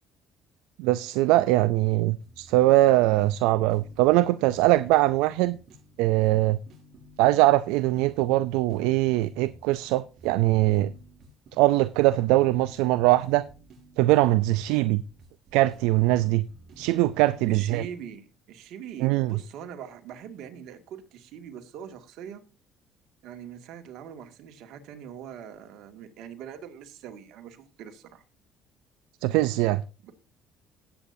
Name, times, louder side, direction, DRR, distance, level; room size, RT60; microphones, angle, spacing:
voice 1, 0.8-5.6 6.0-6.6 7.2-10.9 11.6-13.5 14.0-15.0 15.5-16.4 16.8-17.8 19.0-19.4 29.2-29.8, right 17 dB, 90° right, 0.4 m, -22 dB
sound 1, 2.2-18.1, equal, 50° right, 6.4 m, -53 dB
voice 2, 17.4-22.4 23.2-28.2 30.0-30.1, right 8 dB, 75° right, 2.1 m, -42 dB
18.5 x 8.4 x 2.7 m
cardioid pair, 95°, 0 cm